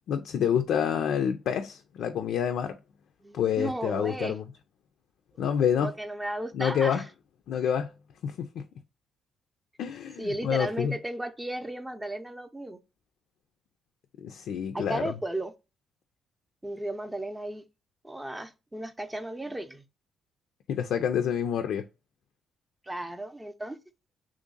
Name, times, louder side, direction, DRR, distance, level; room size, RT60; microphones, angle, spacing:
voice 1, 0.1-2.8 3.3-4.4 5.4-5.9 6.5-7.0 7.5-7.9 8.2-8.6 9.8-11.0 14.2-15.1 20.7-21.9, left 8 dB, 75° left, 0.3 m, -28 dB
voice 2, 3.2-4.4 5.8-7.0 10.2-12.8 14.7-15.5 16.6-17.6 18.0-19.8 22.8-23.8, right 1 dB, 10° right, 0.5 m, -35 dB
3.1 x 2.5 x 3.8 m
cardioid pair, 90°, 0 cm